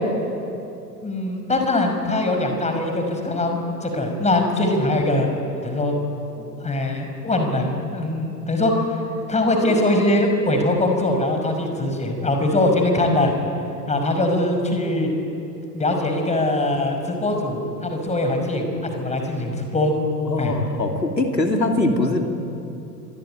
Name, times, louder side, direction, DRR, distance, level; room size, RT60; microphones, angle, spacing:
voice 1, 1.0-5.3 5.6-5.9 6.4-8.8 9.3-13.3 13.9-15.1 15.7-19.9 20.4-20.5, left 1 dB, 15° left, 4 dB, 5.6 m, -22 dB
voice 2, 20.3-22.3, left 2 dB, 85° left, 4 dB, 2.9 m, -22 dB
27.0 x 23.5 x 9.1 m, 2.8 s
figure-of-eight pair, 85°, 48 cm